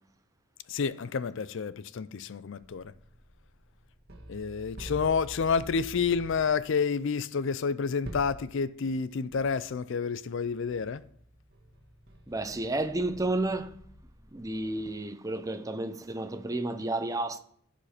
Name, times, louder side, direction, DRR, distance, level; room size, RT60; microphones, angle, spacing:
voice 1, 0.7-2.9 4.3-11.0, left 5 dB, 55° left, 0.4 m, -29 dB
sound 1, 2.6-6.7 8.0-8.5 8.9-9.0 9.3-9.9 10.3-15.0, right 1 dB, 45° right, 1.7 m, -48 dB
voice 2, 12.3-13.7 14.3-17.4, right 2 dB, 15° right, 0.6 m, -31 dB
14.5 x 5.1 x 5.0 m
head